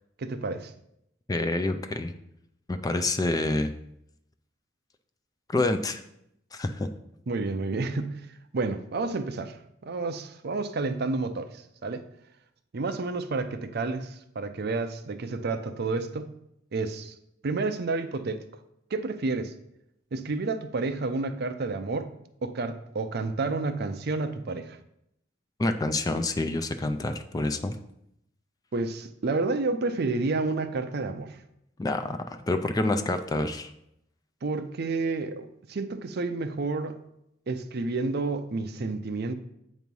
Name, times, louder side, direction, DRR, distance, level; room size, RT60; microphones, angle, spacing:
voice 1, 0.2-0.7 7.3-8.2 8.5-12.0 12.7-16.3 16.7-17.1 17.4-18.4 18.9-19.5 20.1-22.1 22.4-24.8 28.7-31.4 34.4-36.9 37.5-39.3, right 3 dB, 55° right, 9 dB, 0.5 m, -30 dB
voice 2, 1.3-2.1 2.7-3.7 5.5-6.0 6.5-6.9 25.6-27.8 31.8-33.7, left 2 dB, 20° left, 8 dB, 0.3 m, -27 dB
8.2 x 3.1 x 5.3 m, 0.78 s
head